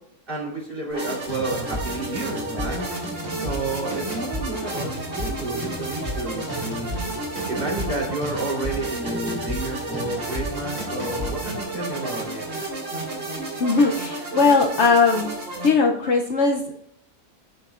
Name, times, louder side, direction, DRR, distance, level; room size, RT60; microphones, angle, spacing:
voice 1, 0.3-2.9 3.3-6.9 7.5-12.4, right 2 dB, 35° right, -5 dB, 3.6 m, -30 dB
sound 1, 0.9-15.7, right 2 dB, 60° right, 2.3 m, -32 dB
sound 2, 1.3-11.6, equal, 20° right, 2.7 m, -34 dB
voice 2, 13.6-15.3 15.6-16.7, left 4 dB, 60° left, 3 dB, 0.9 m, -19 dB
14.0 x 6.2 x 2.4 m, 0.76 s
omnidirectional pair, 1.5 m